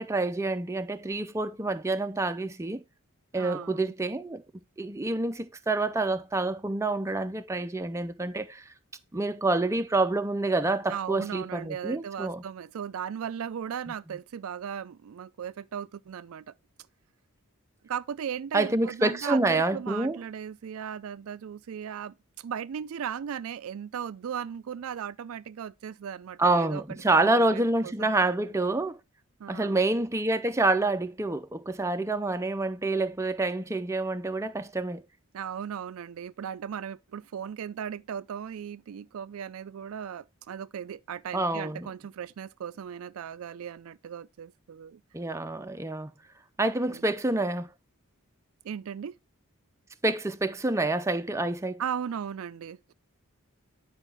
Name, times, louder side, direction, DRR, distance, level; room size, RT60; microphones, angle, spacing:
voice 1, 0.0-2.8 3.3-4.4 4.8-8.6 9.1-12.4 18.5-20.2 26.4-29.0 29.5-35.0 41.3-41.9 45.1-46.1 46.6-47.7 50.0-51.8, right 2 dB, 15° right, 0.5 m, -27 dB
voice 2, 3.3-3.9 10.9-16.5 17.8-28.4 29.4-29.8 35.3-45.0 46.9-47.0 48.6-49.2 51.8-52.9, right 8 dB, 70° right, 0.4 m, -37 dB
9.9 x 4.8 x 3.4 m
head